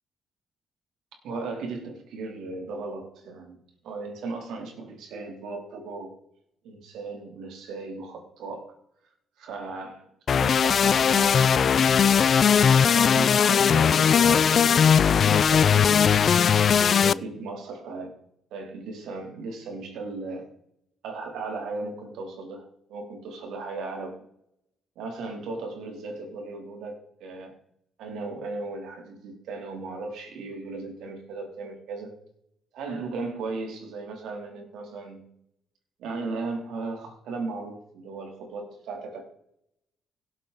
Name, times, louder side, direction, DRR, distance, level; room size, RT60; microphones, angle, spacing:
voice 1, 1.2-3.6 3.8-6.2 6.6-8.7 9.4-12.4 12.7-16.5 16.9-18.2 18.5-20.5 21.0-22.6 22.9-24.2 24.9-27.5 28.0-32.2 32.7-35.3 36.0-39.2, right 3 dB, 80° right, 2 dB, 3.2 m, -36 dB
sound 1, 10.3-17.1, left 7 dB, 50° left, 0.3 m, -19 dB
17.5 x 7.5 x 4.0 m, 0.76 s
cardioid pair, 90°, 0 cm